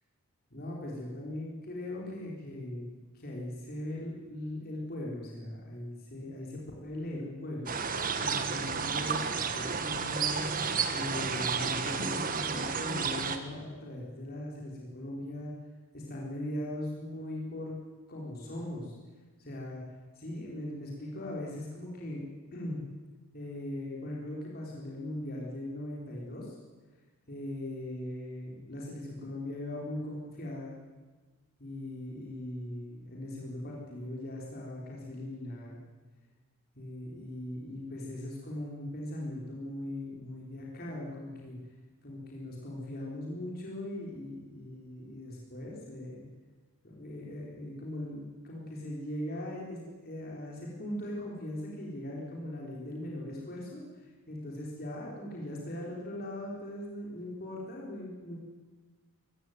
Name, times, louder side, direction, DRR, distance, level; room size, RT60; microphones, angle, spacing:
voice 1, 0.5-2.9 3.1-10.4 10.9-15.5 15.9-17.8 18.1-18.9 19.4-19.8 20.1-22.3 22.5-22.8 23.3-26.6 27.3-30.8 31.6-35.8 36.7-41.6 42.0-46.3 46.8-58.3, left 1 dB, 45° left, -3 dB, 4.4 m, -39 dB
sound 1, 7.7-13.4, right 5 dB, 40° right, 1.5 m, -32 dB
22.5 x 16.0 x 9.5 m, 1.3 s
head